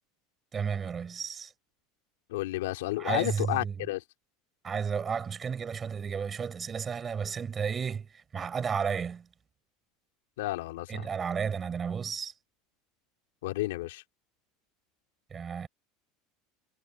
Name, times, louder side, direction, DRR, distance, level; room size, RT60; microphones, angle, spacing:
voice 1, 0.5-1.5 3.0-3.8 4.6-9.3 10.9-12.3 15.3-15.7, right 6 dB, 25° right, 4.8 m, -33 dB
voice 2, 2.3-4.0 10.4-11.1 13.4-14.0, left 17 dB, 90° left, 2.9 m, -31 dB
supercardioid pair, 130°, 0 cm